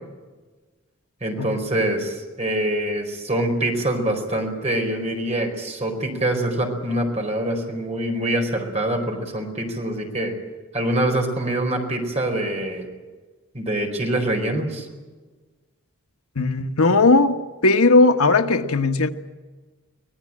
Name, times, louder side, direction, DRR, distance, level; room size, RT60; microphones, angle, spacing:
voice 1, 1.2-10.4 10.7-12.9 13.5-14.9, right 1 dB, 30° right, 3 dB, 4.5 m, -25 dB
voice 2, 16.3-19.1, left 3 dB, 85° left, 7 dB, 1.4 m, -17 dB
25.0 x 18.0 x 8.8 m, 1.3 s
head